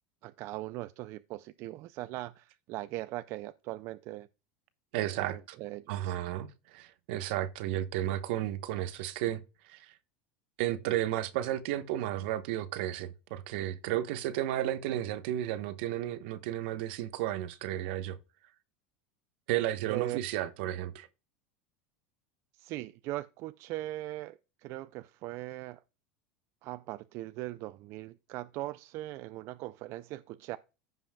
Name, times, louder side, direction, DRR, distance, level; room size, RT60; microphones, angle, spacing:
voice 1, 0.2-4.3 5.1-6.2 19.9-20.2 22.6-25.8 26.6-30.6, right 17 dB, 50° right, 0.4 m, -40 dB
voice 2, 4.9-5.6 5.9-9.9 10.6-18.2 19.5-21.1, right 13 dB, 70° right, 1.0 m, -33 dB
15.0 x 5.5 x 2.3 m
supercardioid pair, 130°, 6 cm